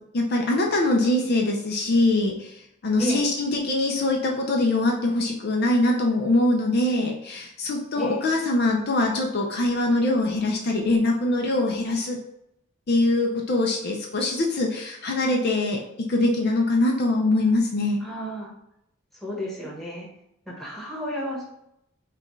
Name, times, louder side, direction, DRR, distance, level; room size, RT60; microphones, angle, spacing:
voice 1, 0.1-2.6 2.8-12.2 12.9-18.0, left 2 dB, 50° left, 0 dB, 0.5 m, -23 dB
voice 2, 18.0-18.5 19.1-20.1 20.5-21.5, equal, ahead, -5 dB, 1.2 m, -31 dB
5.8 x 2.3 x 3.1 m, 0.80 s
head